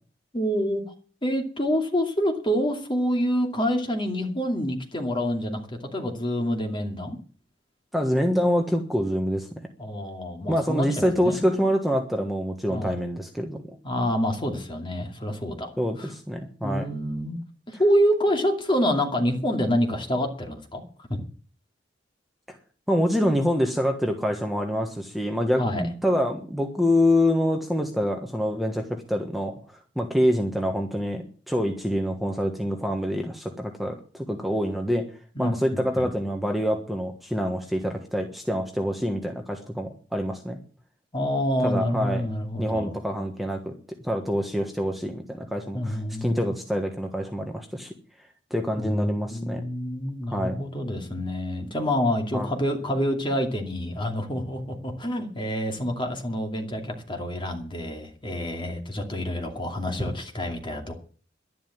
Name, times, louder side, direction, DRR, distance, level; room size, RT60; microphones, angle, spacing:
voice 1, 0.3-0.8 1.2-5.6 5.9-7.2 9.8-11.4 12.7-13.0 13.8-15.7 16.0-16.1 16.6-17.4 17.7-20.8 21.1-21.2 25.6-25.8 35.3-36.1 41.1-42.9 45.7-46.5 48.8-61.0, equal, 25° left, 3 dB, 2.6 m, -27 dB
voice 2, 7.9-9.6 10.5-13.6 15.8-16.9 22.5-22.6 22.9-35.0 35.4-40.6 41.6-42.2 42.6-43.7 44.0-47.9 48.5-49.6 50.3-50.6 52.3-52.5, equal, ahead, 3 dB, 1.4 m, -26 dB
11.5 x 11.0 x 7.3 m, 0.42 s
head